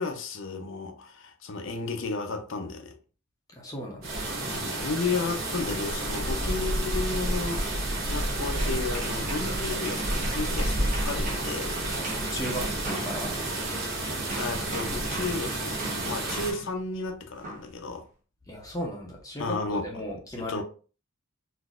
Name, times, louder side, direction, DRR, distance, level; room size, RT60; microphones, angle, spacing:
voice 1, 0.0-2.9 4.5-11.8 14.3-18.1 19.4-19.9 20.4-20.6, left 4 dB, 60° left, 0.6 m, -33 dB
voice 2, 3.5-4.2 12.1-13.4 18.5-20.6, equal, 15° left, 0.6 m, -36 dB
sound 1, 4.0-16.5, right 1 dB, 65° right, 1.1 m, -30 dB
sound 2, 8.5-13.8 14.3-16.8 17.4-17.7, right 2 dB, 35° right, 0.9 m, -39 dB
4.0 x 2.6 x 2.4 m
head